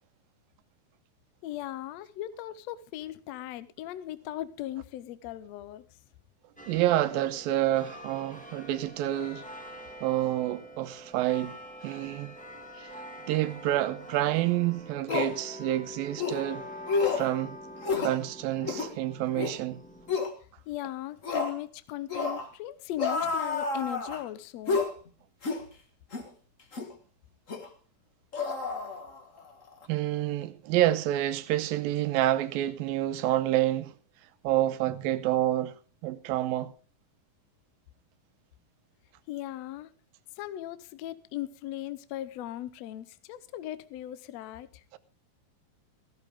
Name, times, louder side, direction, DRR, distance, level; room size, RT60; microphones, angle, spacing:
voice 1, 1.4-5.8 20.7-24.9 39.3-39.9 40.4-44.8, left 13 dB, 85° left, 1.4 m, -38 dB
sound 1, 6.6-20.2, equal, 5° left, 0.8 m, -45 dB
voice 2, 6.7-9.4 10.0-11.6 11.8-12.3 12.8-12.9 13.3-16.6 17.1-17.6 18.0-19.8 29.9-33.9 34.4-35.7 36.0-36.7 44.9-45.0, right 14 dB, 80° right, 2.6 m, -28 dB
sound 2, 14.4-14.5 15.1-15.3 16.2-16.4 16.9-17.3 17.8-18.2 18.6-18.9 19.3-19.6 20.1-20.3 21.2-21.6 22.1-22.5 23.0-24.2 24.7-24.9 25.4-25.6 26.1-26.3 26.7-26.9 27.5-27.7 28.3-29.4 29.7-29.9, left 4 dB, 50° left, 0.9 m, -30 dB
15.0 x 13.5 x 3.7 m
omnidirectional pair, 4.2 m